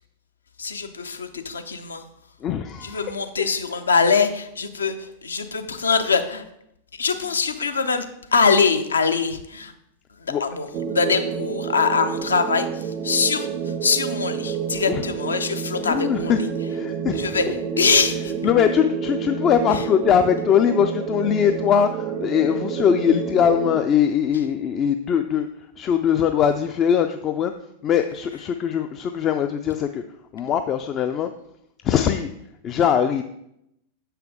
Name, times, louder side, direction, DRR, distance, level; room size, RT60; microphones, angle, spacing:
voice 1, 0.6-2.1 2.8-6.4 6.9-8.1 8.3-9.7 10.2-16.4 17.1-17.5 17.8-18.3 19.7-19.8, left 5 dB, 75° left, 8 dB, 0.6 m, -23 dB
voice 2, 2.4-3.0 10.3-10.4 14.9-15.0 15.8-16.4 16.7-17.3 18.4-25.5 25.8-27.5 27.8-30.0 30.3-31.3 31.8-32.3 32.6-33.2, left 8 dB, 30° left, 8 dB, 0.4 m, -21 dB
sound 1, 10.7-23.8, right 7 dB, 35° right, 0.5 m, -29 dB
7.1 x 5.7 x 3.6 m, 0.79 s
figure-of-eight pair, 90°, 0 cm